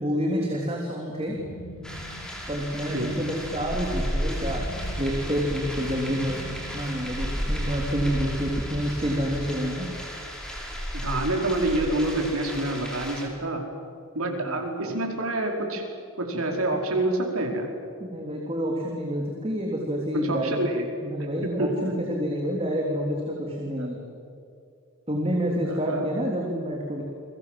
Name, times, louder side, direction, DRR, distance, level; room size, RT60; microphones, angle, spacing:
voice 1, 0.0-1.4 2.5-4.7 5.0-9.9 14.4-14.6 18.0-20.6 21.0-24.0 25.1-27.0, equal, 25° right, -1 dB, 3.2 m, -28 dB
sound 1, 1.2-7.5, equal, 75° left, 3.8 m, -42 dB
sound 2, 1.8-13.3, equal, 5° left, 5.4 m, -33 dB
voice 2, 10.9-13.6 14.1-15.8 16.2-17.7 20.1-20.9 21.6-21.9 23.8-23.9 25.6-26.1, right 2 dB, 80° right, 2 dB, 5.1 m, -27 dB
29.5 x 23.0 x 7.8 m, 2.6 s
head